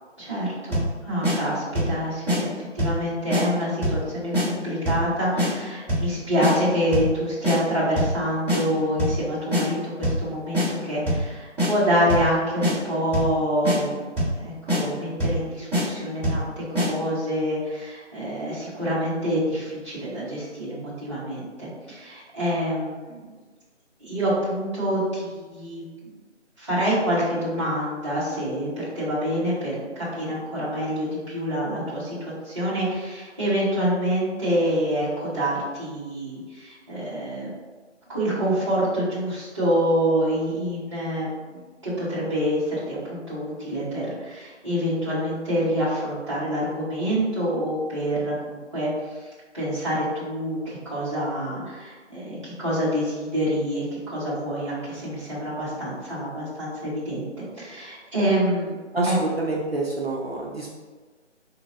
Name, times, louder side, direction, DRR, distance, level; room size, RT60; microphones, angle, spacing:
voice 1, 0.2-23.3 24.0-25.8 26.6-37.5 38.1-49.2 49.5-58.8 59.0-59.2, equal, 25° right, -11 dB, 1.2 m, -26 dB
sound 1, 0.7-0.9 1.2-1.4 1.7-2.0 2.3-2.4 2.8-3.0 3.3-3.4 3.8-4.0 4.3-4.5 4.8-5.1 5.4-5.5 5.9-6.1 6.4-6.5 6.9-7.1 7.4-7.6 7.9-8.2 8.5-8.6 9.0-9.2 9.5-9.6 10.0-10.2 10.5-10.7 11.1-11.3 11.6-11.7 12.1-12.3 12.6-12.7 13.1-13.3 13.6-13.8 14.2-14.4 14.7-14.8 15.2-15.4 15.7-15.8 16.2-16.4 16.7-16.9, equal, 5° right, 1.5 m, -23 dB
voice 2, 58.9-60.7, right 2 dB, 55° right, -2 dB, 0.6 m, -27 dB
4.6 x 2.9 x 2.6 m, 1.4 s
figure-of-eight pair, 175°, 37 cm